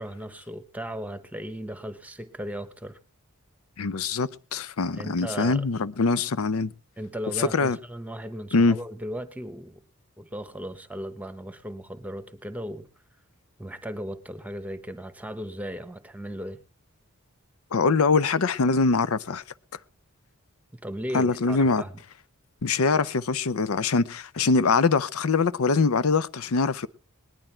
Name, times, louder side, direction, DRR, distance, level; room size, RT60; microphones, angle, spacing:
voice 1, 0.0-3.0 4.9-5.6 7.0-9.8 10.2-12.9 13.6-16.6 20.8-22.0, equal, 5° right, 1.0 m, -36 dB
voice 2, 3.8-6.7 7.4-7.8 8.5-8.8 17.7-19.4 21.1-21.8 22.6-26.9, left 4 dB, 85° left, 0.6 m, -23 dB
19.5 x 11.0 x 4.4 m
head